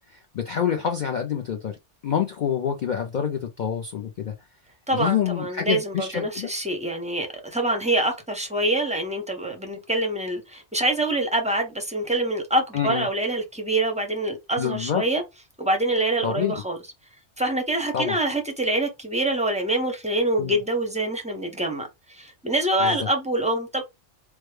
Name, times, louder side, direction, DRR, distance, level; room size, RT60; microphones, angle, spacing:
voice 1, 0.1-1.8 2.0-4.3 4.9-6.5 12.7-13.1 14.6-15.0 16.2-16.5 17.9-18.2 20.4-20.6 22.8-23.0, left 8 dB, 60° left, 0.5 m, -27 dB
voice 2, 4.9-15.2 15.6-16.8 17.4-23.8, right 1 dB, 10° right, 0.4 m, -25 dB
3.2 x 2.1 x 3.2 m
omnidirectional pair, 1.2 m